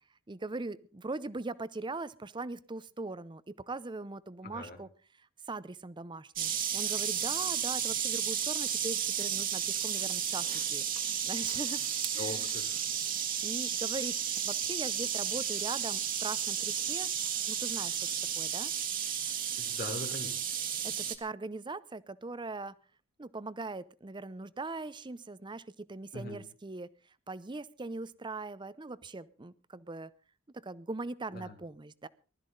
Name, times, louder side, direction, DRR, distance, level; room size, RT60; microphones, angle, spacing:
voice 1, 0.3-4.9 5.5-11.8 12.1-12.5 13.4-14.2 14.4-17.1 17.5-18.0 18.4-18.7 20.8-22.7 23.2-26.9 27.3-30.1 30.5-32.1, right 3 dB, 20° right, 17 dB, 0.6 m, -40 dB
voice 2, 4.4-4.8 12.2-12.9 19.6-20.4 26.1-26.4 31.3-31.6, left 1 dB, 45° left, 4 dB, 2.9 m, -41 dB
sound 1, 6.4-21.2, right 8 dB, 40° right, 1.7 m, -33 dB
19.5 x 13.0 x 3.9 m, 0.36 s
head